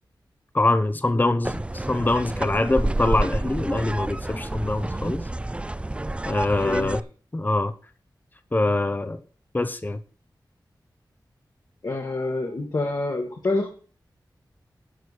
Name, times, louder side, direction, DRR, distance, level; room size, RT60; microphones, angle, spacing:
voice 1, 0.5-5.2 6.3-7.0 7.3-7.7 8.5-9.2 9.5-10.0, left 2 dB, 25° left, 0.9 m, -24 dB
sound 1, 1.4-7.0, right 1 dB, 15° right, 0.4 m, -29 dB
voice 2, 6.6-7.0 11.8-13.7, left 2 dB, 55° left, 2.0 m, -27 dB
11.0 x 4.7 x 8.2 m
wide cardioid pair, 85°, 8 cm